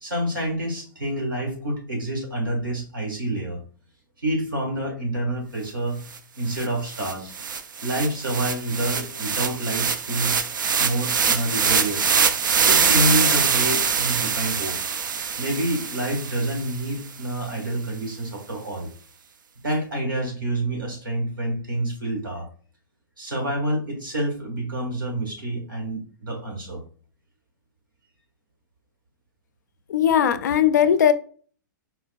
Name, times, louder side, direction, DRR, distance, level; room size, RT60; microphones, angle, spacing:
voice 1, 0.0-3.6 4.2-6.0 6.3-7.3 7.8-10.4 10.8-12.2 12.6-14.8 15.4-18.9 19.6-22.5 23.2-26.8, right 1 dB, 90° right, 1 dB, 1.6 m, -27 dB
sound 1, 6.1-6.2 6.5-16.8, right 6 dB, 75° right, 0.4 m, -24 dB
voice 2, 29.9-31.1, left 9 dB, 60° left, 12 dB, 0.4 m, -18 dB
4.3 x 2.2 x 2.4 m, 0.41 s
figure-of-eight pair, 110°, 11 cm